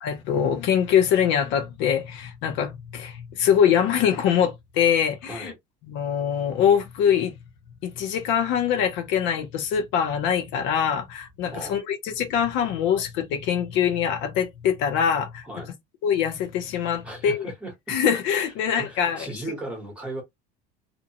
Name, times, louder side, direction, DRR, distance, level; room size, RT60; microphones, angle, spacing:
voice 1, 0.0-5.5 5.9-7.3 7.8-15.4 16.0-17.5 17.9-19.3, left 8 dB, 65° left, 0.8 m, -23 dB
voice 2, 5.2-5.5 11.5-11.7 15.4-15.7 17.0-18.0 18.8-20.2, right 2 dB, 5° right, 1.2 m, -36 dB
2.7 x 2.5 x 2.8 m
cardioid pair, 145°, 21 cm